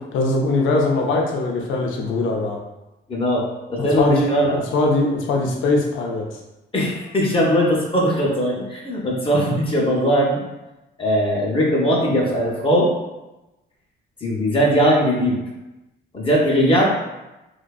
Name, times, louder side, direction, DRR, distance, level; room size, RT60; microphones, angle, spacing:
voice 1, 0.1-2.6 3.8-6.3, left 2 dB, 80° left, 0 dB, 0.5 m, -21 dB
voice 2, 3.1-3.4 3.7-4.6 6.7-10.4 11.0-12.9 14.2-15.4 16.1-16.9, equal, 25° left, -3 dB, 0.6 m, -19 dB
2.5 x 2.2 x 2.3 m, 1.0 s
cardioid pair, 90°, 20 cm